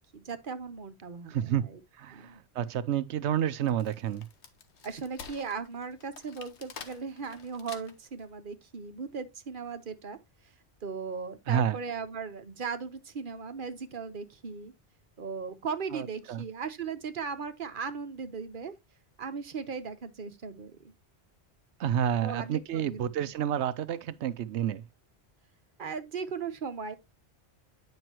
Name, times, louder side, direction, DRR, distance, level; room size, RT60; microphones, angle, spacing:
voice 1, 0.1-1.8 2.1-2.4 4.8-10.2 10.8-14.7 15.2-18.7 19.2-20.9 22.2-23.3 25.8-27.0, right 5 dB, 50° right, 1.1 m, -38 dB
voice 2, 1.3-1.6 2.0-4.3 11.5-11.8 15.9-16.4 21.8-24.8, right 9 dB, 90° right, 0.9 m, -29 dB
Wood, 3.5-8.2, left 6 dB, 80° left, 1.3 m, -48 dB
9.3 x 5.3 x 2.9 m
omnidirectional pair, 1.1 m